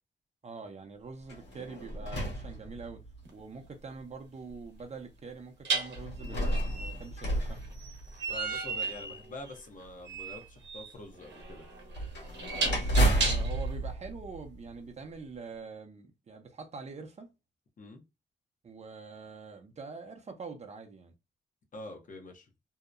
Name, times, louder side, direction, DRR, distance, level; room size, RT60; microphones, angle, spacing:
voice 1, 0.4-3.0 3.3-7.6 13.1-17.3 18.6-21.1, right 4 dB, 40° right, 0.6 m, -44 dB
sound 1, 1.2-3.2 4.0-4.1 6.0-8.5 11.9-15.0, right 1 dB, 75° left, 1.3 m, -31 dB
sound 2, 3.3-3.4 5.7-13.7, right 3 dB, 75° right, 0.8 m, -35 dB
voice 2, 8.3-11.6 17.8-18.0 21.7-22.5, left 2 dB, 45° left, 0.7 m, -45 dB
2.7 x 2.1 x 2.3 m
cardioid pair, 110°, 18 cm